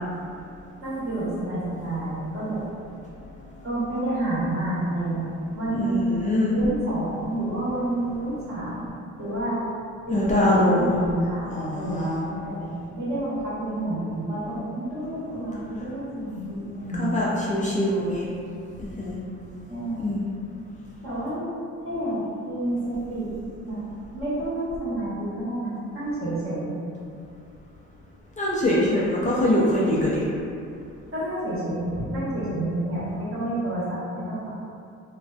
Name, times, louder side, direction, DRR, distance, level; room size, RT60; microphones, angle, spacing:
voice 1, 0.8-2.6 3.6-5.3 5.5-6.2 6.5-9.6 10.1-17.1 19.7-20.2 21.0-21.5 21.8-23.3 23.6-23.8 24.1-26.8 31.1-34.5, right 1 dB, 45° right, -10 dB, 1.1 m, -29 dB
voice 2, 5.7-6.6 10.1-11.0 11.5-12.2 17.0-18.2 18.8-19.2 20.0-20.2 28.4-30.2, left 1 dB, 25° left, -7 dB, 0.3 m, -23 dB
2.4 x 2.2 x 2.3 m, 2.5 s
cardioid pair, 90°, 30 cm